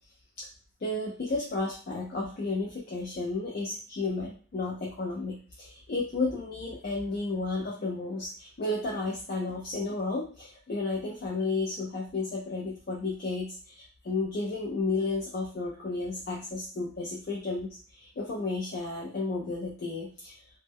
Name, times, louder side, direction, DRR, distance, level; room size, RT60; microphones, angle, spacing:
voice 1, 0.8-20.4, left 3 dB, 50° left, -3 dB, 0.4 m, -32 dB
2.1 x 2.1 x 3.4 m, 0.40 s
head